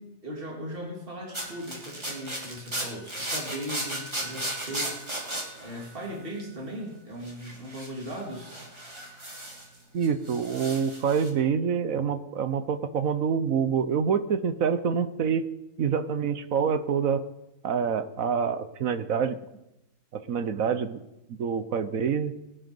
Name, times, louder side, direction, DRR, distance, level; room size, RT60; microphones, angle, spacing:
voice 1, 0.0-5.0 5.6-8.6, equal, 35° right, -1 dB, 3.2 m, -38 dB
sound 1, 1.3-6.6 7.2-9.8 10.0-11.3, right 1 dB, 20° right, 2.4 m, -36 dB
voice 2, 9.9-15.5 15.8-17.2 17.6-19.4 20.1-21.0 21.3-22.3, right 6 dB, 65° right, 11 dB, 1.2 m, -26 dB
20.5 x 9.2 x 5.4 m, 0.90 s
omnidirectional pair, 1.6 m